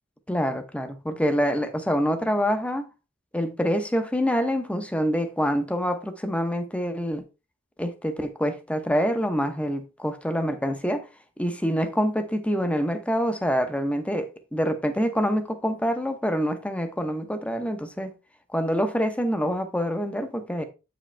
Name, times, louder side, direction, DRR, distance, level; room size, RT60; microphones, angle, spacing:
voice 1, 0.3-2.8 3.3-7.2 7.8-11.1 11.4-18.1 18.5-20.6, equal, 5° left, 0.9 m, -26 dB
8.1 x 5.0 x 3.3 m
head